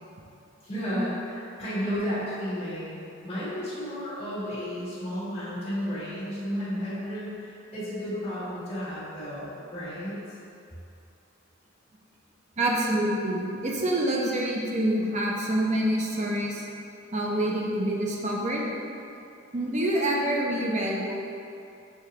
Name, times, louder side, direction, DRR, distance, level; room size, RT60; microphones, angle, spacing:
voice 1, 0.6-10.4, equal, 30° left, -12 dB, 1.5 m, -33 dB
voice 2, 12.6-16.6 17.1-18.6 19.5-21.2, right 1 dB, 35° right, -3 dB, 0.5 m, -26 dB
6.4 x 2.3 x 2.9 m, 2.6 s
head